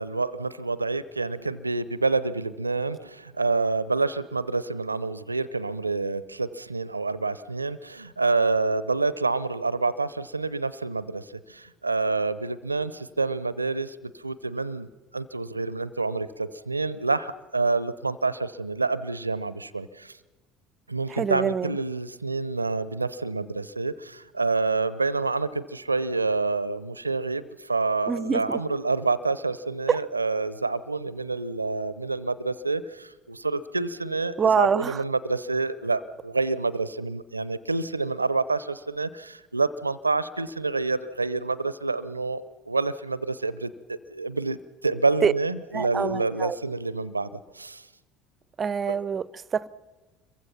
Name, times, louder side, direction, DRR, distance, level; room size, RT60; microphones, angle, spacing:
voice 1, 0.0-20.2 20.9-47.9 48.9-49.0, right 3 dB, 90° right, 0.6 m, -28 dB
voice 2, 21.1-21.8 28.1-28.6 29.9-30.0 34.4-35.0 45.2-45.3 45.7-46.6 48.6-49.7, right 6 dB, 30° right, 0.7 m, -25 dB
27.0 x 23.0 x 5.8 m
figure-of-eight pair, 65°, 0 cm